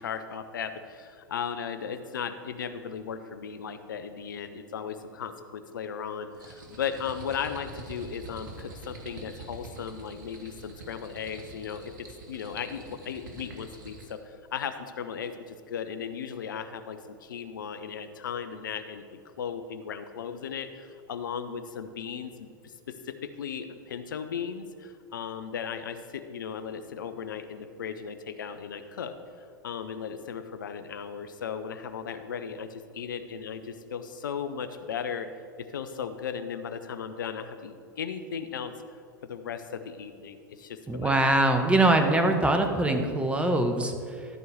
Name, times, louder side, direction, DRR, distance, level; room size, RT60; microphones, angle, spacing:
voice 1, 0.0-11.9 12.3-29.1 29.6-35.3 35.7-38.7 39.3-41.1, left 7 dB, 75° left, 10 dB, 0.8 m, -36 dB
sound 1, 6.3-14.2, right 2 dB, 70° right, 1.9 m, -45 dB
voice 2, 40.9-44.3, right 2 dB, 10° right, 5 dB, 1.2 m, -23 dB
13.5 x 4.7 x 6.8 m, 2.2 s
hypercardioid pair, 95°, 11 cm